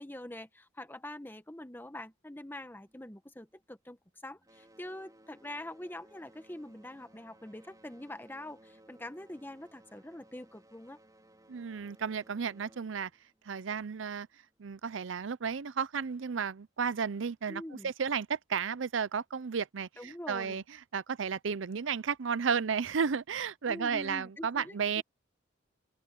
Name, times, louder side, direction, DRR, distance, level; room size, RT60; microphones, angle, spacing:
voice 1, 0.0-11.0 17.5-17.9 20.0-20.6 23.7-25.0, left 1 dB, 10° left, 1.1 m, -44 dB
sound 1, 2.6-4.0 4.3-14.6 15.4-15.5 16.2-16.3 16.9-17.0, right 1 dB, 20° right, 4.2 m, -61 dB
voice 2, 11.5-13.1 13.5-14.3 14.6-20.6 20.9-25.0, right 6 dB, 75° right, 0.6 m, -33 dB
open air
head